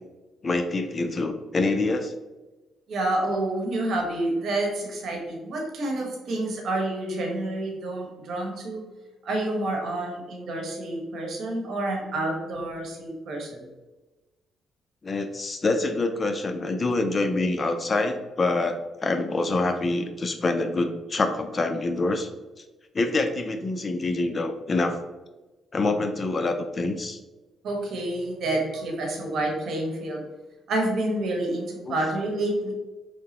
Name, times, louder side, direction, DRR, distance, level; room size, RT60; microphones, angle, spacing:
voice 1, 0.4-2.1 15.0-22.3 22.9-25.0 25.7-27.2 31.8-32.0, left 2 dB, 35° left, 7 dB, 0.5 m, -26 dB
voice 2, 2.9-8.8 9.2-13.7 27.6-30.2 30.7-32.7, right 1 dB, 65° right, 1 dB, 1.4 m, -28 dB
4.7 x 3.4 x 2.9 m, 1.1 s
cardioid pair, 90°, 0 cm